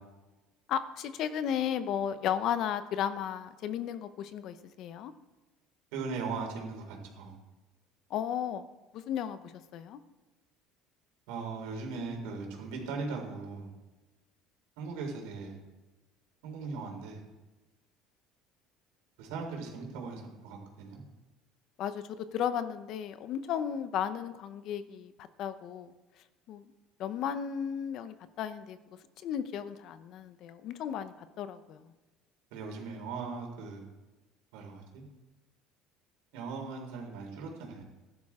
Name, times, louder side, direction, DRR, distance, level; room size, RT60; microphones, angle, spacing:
voice 1, 0.7-5.1 8.1-8.6 8.9-10.0 21.8-25.9 26.5-26.7 27.0-28.8 29.2-31.9, left 9 dB, 50° left, 12 dB, 0.8 m, -34 dB
voice 2, 5.9-7.4 11.3-13.7 14.8-15.6 16.4-17.2 19.2-21.0 32.5-33.8 34.5-35.0 36.3-37.8, right 4 dB, 85° right, 1 dB, 3.9 m, -39 dB
15.5 x 11.5 x 3.7 m, 1.1 s
cardioid pair, 145°, 0 cm